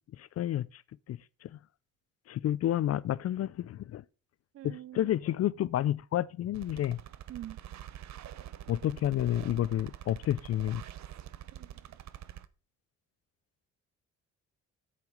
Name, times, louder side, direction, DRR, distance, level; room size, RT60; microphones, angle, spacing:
voice 1, 0.2-0.8 1.1-1.5 2.3-4.0 4.6-7.0 8.7-10.8, left 12 dB, 55° left, 0.4 m, -30 dB
voice 2, 4.5-5.1 7.3-7.6 11.6-11.7, right 13 dB, 50° right, 0.4 m, -43 dB
sound 1, 6.5-12.5, right 11 dB, 65° right, 0.8 m, -46 dB
8.4 x 6.9 x 5.2 m
cardioid pair, 90°, 30 cm